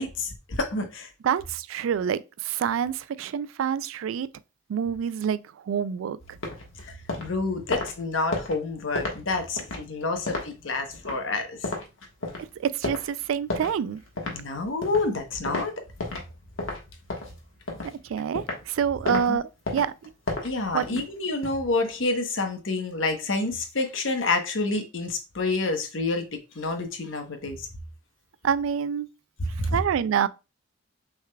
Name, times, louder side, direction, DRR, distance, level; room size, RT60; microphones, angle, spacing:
voice 1, 0.0-1.1 6.8-11.7 14.3-15.7 19.1-19.4 20.4-26.3 26.5-27.7 29.6-29.8, left 3 dB, 75° left, 1.0 m, -28 dB
voice 2, 1.2-4.3 4.7-5.4 5.7-6.2 12.6-14.0 18.0-19.9 20.7-21.0 28.4-29.1 29.7-30.3, right 8 dB, 90° right, 0.3 m, -27 dB
sound 1, 6.2-16.3 16.6-18.7 19.0-19.2 19.7-21.5, left 2 dB, 90° left, 1.3 m, -34 dB
6.3 x 3.6 x 2.2 m
head